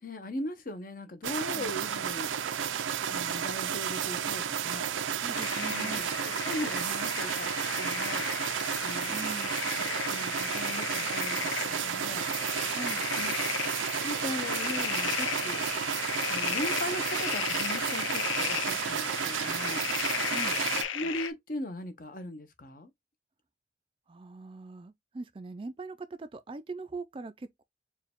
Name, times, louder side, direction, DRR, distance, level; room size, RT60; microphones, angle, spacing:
voice 1, 0.0-2.3 3.1-5.0 5.7-8.3 8.8-9.3 9.7-12.3 13.2-13.4 14.0-15.6 16.3-19.9 20.9-22.9, left 1 dB, 45° left, 0.8 m, -39 dB
sound 1, 1.2-20.8, right 8 dB, 85° right, 0.5 m, -32 dB
voice 2, 5.2-6.2 9.1-9.5 12.7-13.1 20.2-20.6 24.1-27.6, right 3 dB, 30° right, 0.3 m, -41 dB
sound 2, 5.3-21.3, left 8 dB, 90° left, 0.5 m, -35 dB
4.5 x 2.3 x 3.5 m
head